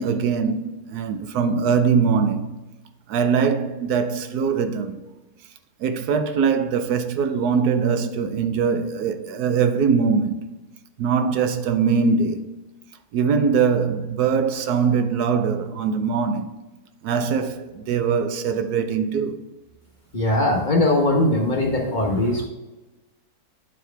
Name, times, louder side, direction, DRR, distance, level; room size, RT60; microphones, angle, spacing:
voice 1, 0.0-2.5 3.1-5.0 5.8-10.5 11.0-12.5 13.1-16.5 17.0-19.4 22.0-22.5, right 6 dB, 85° right, 1.2 m, -22 dB
voice 2, 20.1-22.5, left 1 dB, 35° left, 1.1 m, -20 dB
9.7 x 4.6 x 3.4 m
omnidirectional pair, 1.6 m